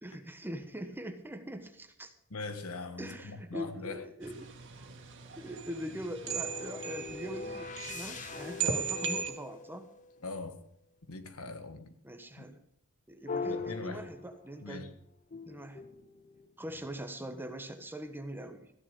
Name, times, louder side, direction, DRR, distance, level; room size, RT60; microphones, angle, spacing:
voice 1, 0.0-2.1 3.0-4.5 5.4-9.9 12.0-12.6 13.1-14.9 15.5-15.8 16.6-18.7, equal, 10° right, 1.2 m, -42 dB
voice 2, 2.3-4.0 10.2-10.6 11.1-11.9 13.4-14.0 14.6-14.9, left 3 dB, 70° left, 1.6 m, -41 dB
sound 1, 4.2-9.3, right 6 dB, 55° right, 2.2 m, -38 dB
sound 2, 6.3-10.4 13.3-14.8 15.3-17.1, left 4 dB, 35° left, 0.6 m, -42 dB
15.0 x 10.5 x 5.3 m
head